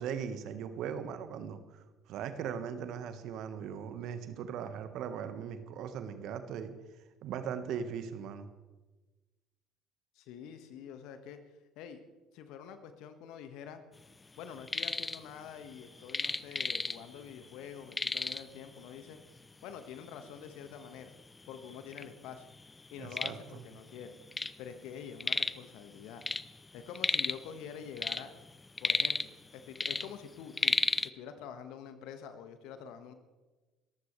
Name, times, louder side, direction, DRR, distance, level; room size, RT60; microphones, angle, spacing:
voice 1, 0.0-6.7 7.2-8.5 23.0-23.4, right 7 dB, 55° right, 9 dB, 1.4 m, -39 dB
voice 2, 10.1-11.4 11.7-12.0 12.3-13.8 14.3-19.2 19.6-21.1 21.5-22.5 22.9-24.2 24.6-26.2 26.7-28.3 28.8-30.8 31.1-33.1, left 8 dB, 60° left, 9 dB, 1.6 m, -46 dB
sound 1, 14.4-15.2 15.5-17.3 17.5-17.6 17.9-18.6 19.4-19.5 20.0-20.1 20.8-20.9 21.2-22.0 22.5-24.6 24.9-25.7 26.0-27.5 27.8-29.5 29.8-31.1, left 3 dB, 20° left, 0.6 m, -33 dB
29.5 x 14.5 x 3.3 m, 1.2 s
figure-of-eight pair, 60°, 0 cm